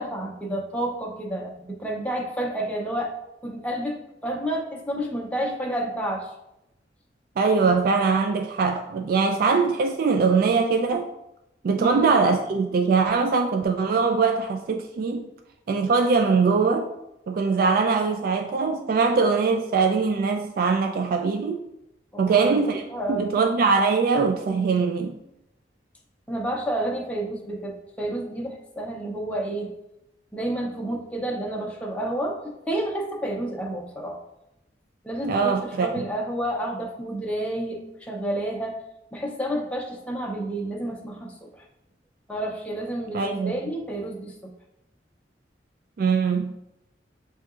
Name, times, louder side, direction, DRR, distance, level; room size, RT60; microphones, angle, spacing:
voice 1, 0.0-3.1 3.4-6.3 11.8-12.2 22.1-23.4 26.3-29.7 30.3-34.2 35.0-38.8 39.1-41.6 42.3-44.5, right 1 dB, 10° left, -1 dB, 0.6 m, -30 dB
voice 2, 7.4-11.1 11.6-15.2 15.7-16.9 17.3-21.6 22.2-22.8 23.1-25.2 35.2-36.0 43.1-43.6 46.0-46.5, right 4 dB, 55° right, 4 dB, 0.3 m, -22 dB
7.1 x 2.8 x 2.4 m, 0.87 s
head